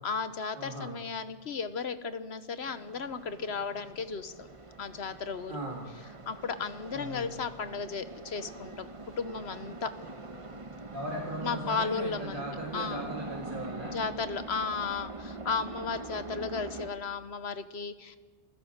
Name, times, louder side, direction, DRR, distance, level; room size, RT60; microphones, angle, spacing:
voice 1, 0.0-4.5 4.8-5.6 6.3-8.9 9.2-9.9 11.4-12.4 12.7-13.1 13.9-18.2, left 5 dB, 70° left, 11 dB, 1.3 m, -34 dB
voice 2, 0.5-0.9 5.5-5.8 6.9-7.3 10.9-14.0, right 1 dB, 50° right, -3 dB, 2.6 m, -38 dB
sound 1, 2.6-16.9, right 2 dB, 30° right, 1.1 m, -43 dB
28.5 x 16.0 x 6.6 m, 1.4 s
omnidirectional pair, 1.2 m